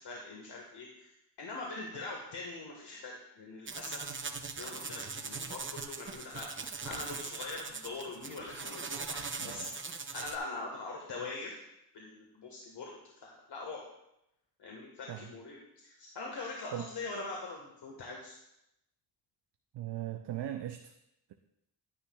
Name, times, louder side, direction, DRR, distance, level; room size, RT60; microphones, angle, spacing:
voice 1, 0.0-4.1 4.6-6.5 6.8-9.7 10.1-11.6 11.9-12.9 13.2-13.8 14.6-18.3, left 3 dB, 75° left, -1 dB, 1.6 m, -43 dB
sound 1, 3.7-10.4, right 4 dB, 30° right, 0.7 m, -41 dB
voice 2, 9.4-9.7 15.1-15.3 16.7-16.9 19.7-20.9, right 12 dB, 70° right, 6 dB, 0.6 m, -39 dB
11.5 x 10.0 x 2.3 m, 0.84 s
wide cardioid pair, 95°, 43 cm